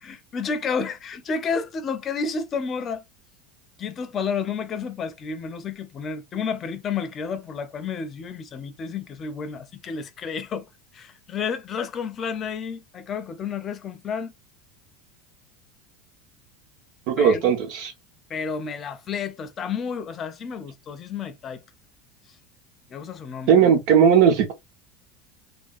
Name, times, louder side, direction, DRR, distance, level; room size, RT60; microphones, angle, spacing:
voice 1, 0.0-3.0 3.8-10.7 10.9-14.3 17.2-17.5 18.3-21.6 22.9-23.7, left 5 dB, 30° left, 0.7 m, -31 dB
voice 2, 17.1-17.9 23.5-24.5, right 7 dB, 65° right, 1.2 m, -17 dB
3.5 x 2.4 x 2.5 m
supercardioid pair, 130°, 0 cm